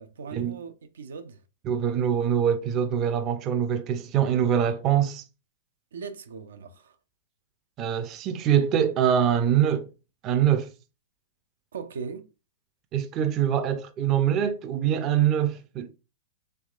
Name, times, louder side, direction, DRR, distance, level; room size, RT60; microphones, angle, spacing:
voice 1, 0.0-1.4 5.9-7.0 11.7-12.3, right 5 dB, 85° right, 0.5 m, -39 dB
voice 2, 1.7-5.2 7.8-9.9 10.2-10.7 12.9-15.9, right 9 dB, 30° right, 0.4 m, -24 dB
3.4 x 3.1 x 2.4 m
hypercardioid pair, 140°, 0 cm